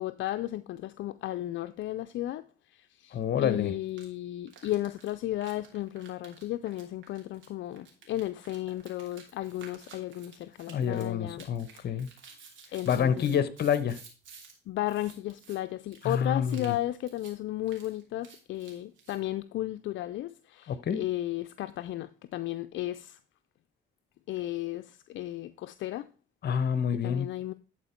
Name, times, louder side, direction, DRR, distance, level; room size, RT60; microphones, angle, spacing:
voice 1, 0.0-11.9 12.7-13.4 14.7-23.2 24.3-26.1 27.0-27.5, left 14 dB, 75° left, 0.5 m, -34 dB
voice 2, 3.1-3.7 10.7-12.1 12.9-14.0 16.0-16.7 20.7-21.0 26.4-27.3, left 8 dB, 55° left, 1.0 m, -28 dB
sound 1, 3.9-4.1 4.5-14.5 14.8-15.6 15.9-16.2 16.5-16.8 17.1-17.3 17.6-19.2, right 5 dB, 75° right, 2.9 m, -53 dB
11.5 x 4.4 x 4.4 m
cardioid pair, 90°, 20 cm